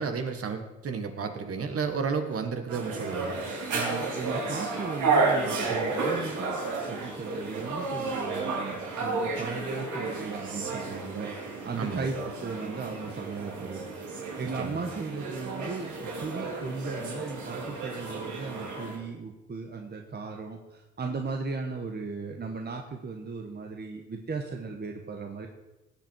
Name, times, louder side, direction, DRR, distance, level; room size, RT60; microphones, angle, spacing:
voice 1, 0.0-3.4 11.7-12.1 14.6-14.8, right 5 dB, 50° right, 7 dB, 1.7 m, -32 dB
sound 1, 2.7-19.0, right 3 dB, 75° right, 3.1 m, -32 dB
voice 2, 3.7-6.6 6.9-13.8 14.4-25.5, right 4 dB, 35° right, 3 dB, 1.4 m, -36 dB
19.0 x 7.8 x 4.7 m, 1.0 s
cardioid pair, 90°, 30 cm